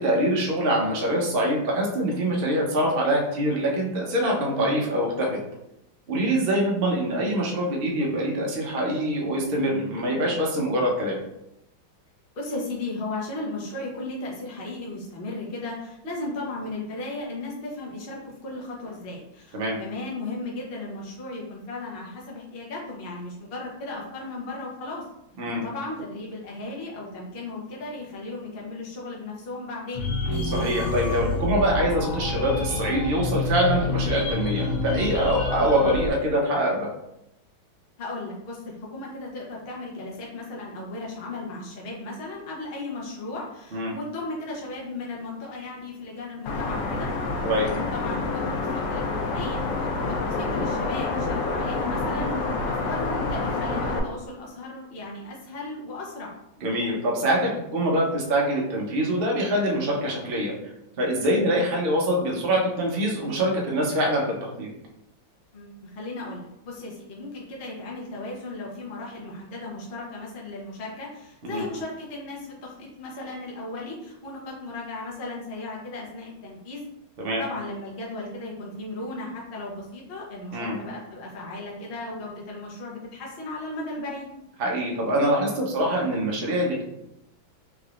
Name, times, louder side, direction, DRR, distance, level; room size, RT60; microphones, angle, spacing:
voice 1, 0.0-5.4 6.1-11.2 19.5-19.8 25.4-25.6 30.5-36.9 43.7-43.9 47.4-47.7 56.6-60.5 61.0-64.7 71.4-71.6 77.2-77.4 80.5-80.8 84.6-86.8, equal, 85° right, -2 dB, 0.5 m, -24 dB
voice 2, 12.3-25.0 25.6-30.0 35.6-35.8 38.0-47.1 47.6-52.3 52.6-56.3 65.5-76.9 77.4-84.3, left 2 dB, 50° left, -3 dB, 0.6 m, -36 dB
sound 1, 29.9-36.1, left 2 dB, 75° left, 1.3 m, -28 dB
sound 2, 46.5-54.0, left 3 dB, 90° left, 1.5 m, -28 dB
3.7 x 3.3 x 2.4 m, 0.84 s
omnidirectional pair, 2.2 m